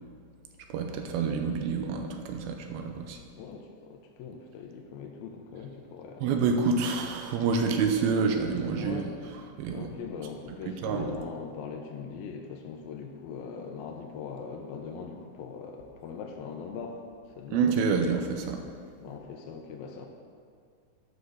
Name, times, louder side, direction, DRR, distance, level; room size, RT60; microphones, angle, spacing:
voice 1, 0.7-3.2 6.2-9.9 10.5-11.2 17.5-18.6, right 5 dB, 80° right, 4 dB, 2.5 m, -28 dB
voice 2, 3.4-6.3 8.8-9.1 9.7-17.6 19.0-20.1, left 6 dB, 75° left, 2 dB, 2.4 m, -41 dB
10.0 x 5.4 x 6.5 m, 2.2 s
omnidirectional pair, 4.7 m